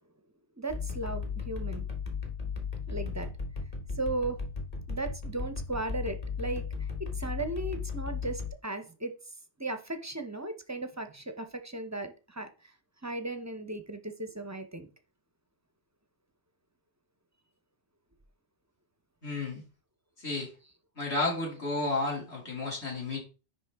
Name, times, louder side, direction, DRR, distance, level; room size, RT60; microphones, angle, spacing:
voice 1, 0.6-1.9 2.9-3.3 4.0-4.4 4.9-9.2 9.6-12.5 13.0-14.9, right 2 dB, 20° right, 0.5 m, -36 dB
sound 1, 0.7-8.5, left 5 dB, 35° left, 1.3 m, -36 dB
voice 2, 19.2-19.6 20.2-20.5 21.0-23.2, left 2 dB, 70° left, 2.9 m, -32 dB
9.9 x 3.5 x 3.4 m
omnidirectional pair, 1.2 m